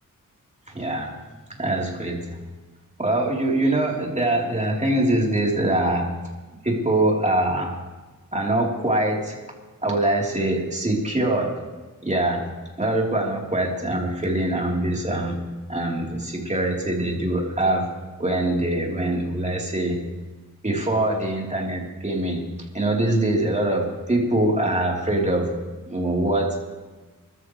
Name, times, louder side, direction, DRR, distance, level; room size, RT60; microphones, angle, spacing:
voice 1, 0.7-1.1 1.6-2.3 3.0-6.2 6.6-7.7 8.3-9.4 9.8-11.7 12.0-12.5 12.8-15.4 15.7-17.9 18.2-20.0 20.6-22.5 22.7-25.5 25.9-26.6, right 1 dB, 20° right, -1 dB, 3.7 m, -23 dB
26.0 x 13.5 x 3.3 m, 1.3 s
wide cardioid pair, 85°, 33 cm